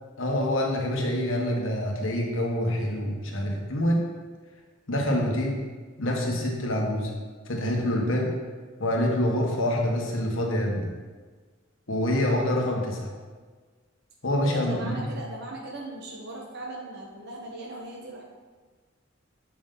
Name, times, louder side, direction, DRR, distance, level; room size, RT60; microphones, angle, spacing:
voice 1, 0.2-4.0 4.9-5.6 6.0-7.1 7.5-8.3 8.8-10.9 11.9-13.1 14.2-15.0, left 1 dB, 90° left, -1 dB, 1.4 m, -26 dB
voice 2, 14.4-18.2, right 2 dB, 55° right, -2 dB, 1.2 m, -38 dB
7.9 x 6.0 x 3.8 m, 1.4 s
head